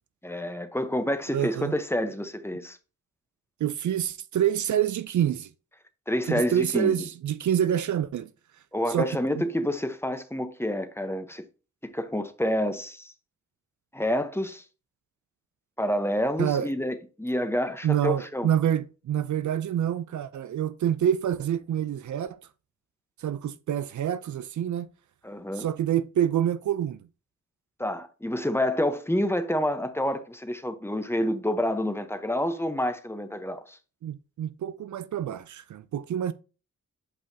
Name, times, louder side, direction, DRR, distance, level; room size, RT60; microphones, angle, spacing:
voice 1, 0.2-2.8 6.1-6.9 8.7-11.4 11.8-13.1 13.9-14.6 15.8-18.5 25.2-25.7 27.8-33.8, left 1 dB, 10° left, 0.9 m, -28 dB
voice 2, 1.3-1.7 3.6-5.5 6.3-8.3 8.9-9.1 16.4-16.7 17.8-22.4 23.2-24.9 25.6-27.0 34.0-36.3, right 10 dB, 65° right, 0.5 m, -27 dB
8.3 x 5.6 x 2.7 m
cardioid pair, 65°, 31 cm